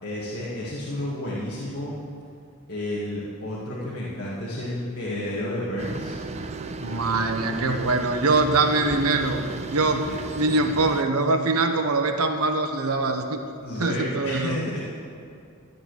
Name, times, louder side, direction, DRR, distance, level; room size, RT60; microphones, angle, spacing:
voice 1, 0.0-1.9 2.7-6.2 8.6-8.9 10.1-10.2 13.6-14.8, left 1 dB, 45° left, -8 dB, 2.1 m, -31 dB
sound 1, 5.8-11.0, right 2 dB, 30° right, 0.6 m, -35 dB
voice 2, 6.8-9.4 9.7-10.1 10.4-13.4 13.8-14.6, right 3 dB, 80° right, 5 dB, 1.1 m, -23 dB
12.5 x 6.8 x 9.6 m, 2.5 s
head